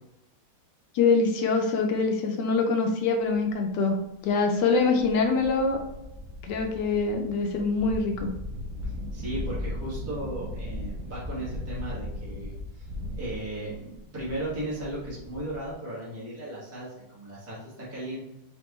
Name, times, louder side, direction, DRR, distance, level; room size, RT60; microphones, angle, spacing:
voice 1, 0.9-4.0 4.2-5.8 6.4-8.3, left 4 dB, 75° left, 3 dB, 1.0 m, -24 dB
sound 1, 4.7-15.7, left 1 dB, 65° right, 1.0 m, -37 dB
voice 2, 8.8-18.2, right 1 dB, 10° right, -8 dB, 1.2 m, -36 dB
5.3 x 3.0 x 3.0 m, 0.91 s
omnidirectional pair, 2.3 m